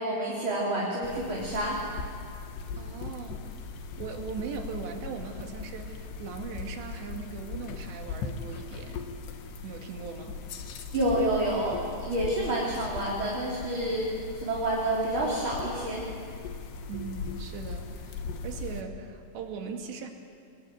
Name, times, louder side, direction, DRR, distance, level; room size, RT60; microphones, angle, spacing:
voice 1, 0.0-1.8 10.9-14.1 14.3-16.1, right 1 dB, 30° right, -4 dB, 4.0 m, -28 dB
sound 1, 1.0-18.8, left 5 dB, 80° left, 3.8 m, -39 dB
voice 2, 2.8-3.4 4.0-9.1 9.6-10.4 16.9-20.1, right 5 dB, 85° right, 3 dB, 4.4 m, -39 dB
27.5 x 22.0 x 9.5 m, 2.5 s
omnidirectional pair, 4.9 m